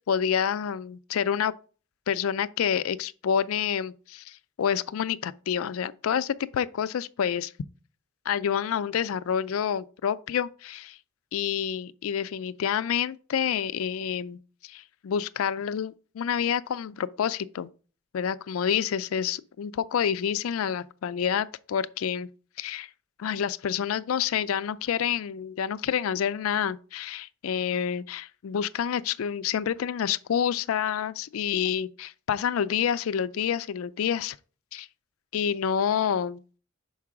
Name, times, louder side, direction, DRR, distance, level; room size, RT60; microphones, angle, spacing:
voice 1, 0.1-1.5 2.1-7.5 8.3-11.0 11.3-17.7 18.1-22.3 22.6-22.9 23.2-34.4 34.7-34.9 35.3-36.4, left 8 dB, 80° left, 0.4 m, -28 dB
5.8 x 4.7 x 4.7 m
head